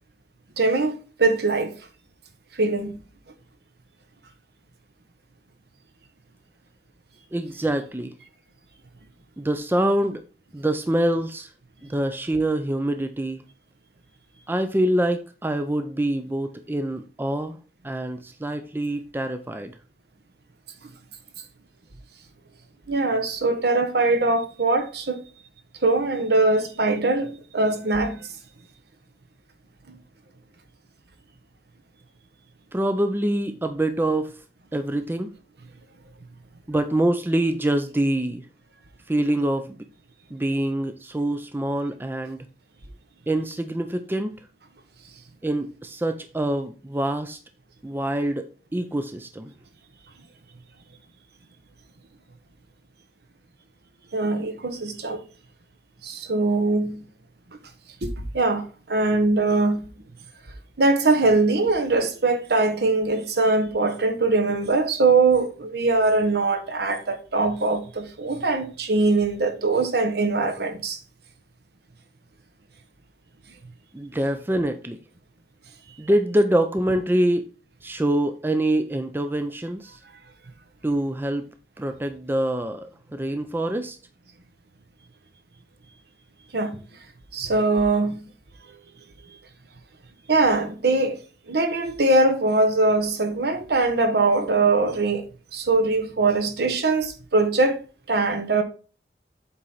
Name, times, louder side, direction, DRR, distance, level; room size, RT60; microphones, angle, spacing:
voice 1, 0.6-1.7 2.5-3.0 22.9-25.2 25.8-28.3 29.9-30.0 54.1-55.2 56.0-57.1 58.0-59.9 60.8-71.0 86.5-86.8 87.3-88.3 90.3-91.2 91.5-95.2 95.5-97.8 98.1-98.6, right 3 dB, 60° right, 1.1 m, -22 dB
voice 2, 7.3-8.1 9.4-10.2 10.5-11.5 11.9-13.4 14.5-17.6 17.8-19.8 32.7-34.3 34.7-35.3 36.7-38.5 39.1-39.8 40.3-42.5 43.3-44.3 45.4-47.4 47.8-49.5 73.9-75.0 76.0-77.5 77.8-80.0 80.8-81.5 81.8-84.0, right 1 dB, 10° right, 0.4 m, -25 dB
7.9 x 4.4 x 4.0 m
head